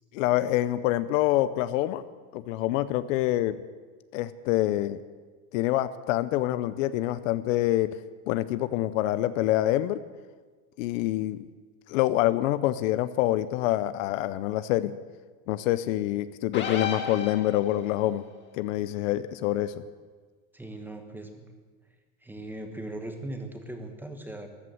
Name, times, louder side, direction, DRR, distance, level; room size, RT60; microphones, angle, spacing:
voice 1, 0.1-2.0 2.3-3.6 4.1-5.0 5.5-7.9 8.3-10.0 10.8-11.5 11.9-14.9 15.5-18.2 18.5-19.8, left 14 dB, 60° left, 14 dB, 0.7 m, -26 dB
sound 1, 16.5-17.9, left 6 dB, 25° left, 2.0 m, -33 dB
voice 2, 20.5-21.5 22.2-24.5, right 1 dB, 5° right, 5 dB, 1.2 m, -39 dB
14.5 x 11.0 x 7.7 m, 1.4 s
supercardioid pair, 150°, 44 cm